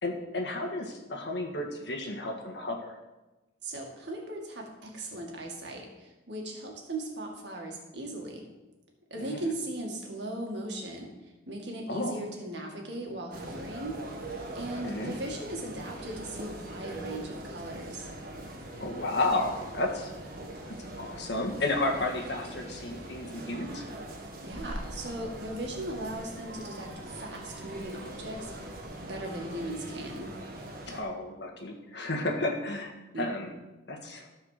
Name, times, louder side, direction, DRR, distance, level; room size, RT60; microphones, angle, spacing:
voice 1, 0.0-2.9 9.2-9.4 11.9-12.1 14.8-15.1 18.8-20.1 20.7-23.8 30.9-33.5 33.9-34.3, left 2 dB, 65° left, 1 dB, 1.7 m, -32 dB
voice 2, 3.6-8.5 9.1-14.0 14.5-18.1 24.2-28.5 29.1-30.3 33.1-33.5, right 1 dB, 65° right, 0 dB, 2.1 m, -38 dB
sound 1, 13.3-31.0, right 1 dB, 45° right, 1.6 m, -42 dB
13.5 x 4.8 x 6.7 m, 1.1 s
head